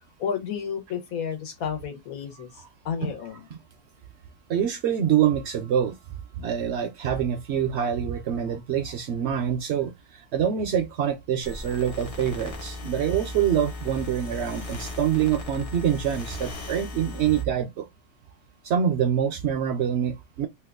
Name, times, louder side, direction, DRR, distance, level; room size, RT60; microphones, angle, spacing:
voice 1, 0.2-3.4, left 7 dB, 85° left, 1.4 m, -32 dB
voice 2, 4.5-5.9 6.4-17.9 18.6-20.5, right 9 dB, 65° right, 0.7 m, -25 dB
sound 1, 11.4-17.4, left 2 dB, 35° left, 0.6 m, -37 dB
2.9 x 2.3 x 3.5 m
omnidirectional pair, 1.5 m